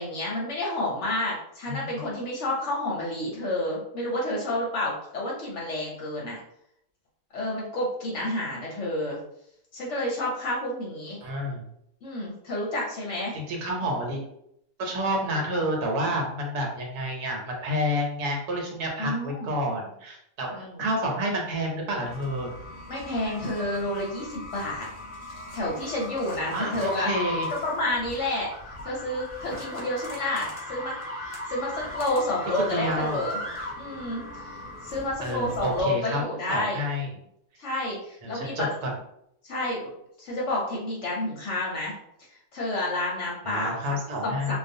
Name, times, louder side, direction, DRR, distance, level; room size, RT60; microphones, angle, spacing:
voice 1, 0.0-6.4 7.3-9.2 9.7-11.2 12.0-13.3 16.0-16.1 19.0-19.5 20.5-20.9 22.9-24.9 25.5-27.1 27.5-28.5 28.8-33.4 33.8-36.8 37.6-38.6 39.4-39.9 40.2-41.9 42.5-43.8 44.2-44.6, left 1 dB, 60° left, -3 dB, 0.8 m, -30 dB
voice 2, 1.7-2.2 11.2-11.6 13.3-14.2 14.8-22.5 26.5-27.5 32.6-33.2 35.2-36.2 36.5-37.1 38.2-38.9 43.4-44.6, equal, 80° right, 0 dB, 1.2 m, -29 dB
sound 1, 22.0-35.8, left 1 dB, 40° left, 0.4 m, -38 dB
2.4 x 2.3 x 2.6 m, 0.74 s
omnidirectional pair, 1.6 m